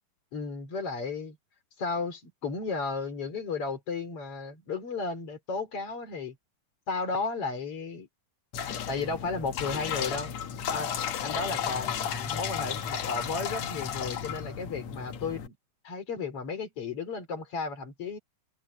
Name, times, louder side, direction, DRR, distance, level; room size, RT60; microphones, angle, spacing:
voice 1, 0.3-1.4 1.8-6.4 6.9-8.1 8.9-10.3 10.7-10.9 11.2-15.6 15.8-18.2, left 4 dB, 40° left, 4.2 m, -34 dB
sound 1, 8.5-15.5, left 8 dB, 60° left, 2.3 m, -33 dB
open air
omnidirectional pair, 3.9 m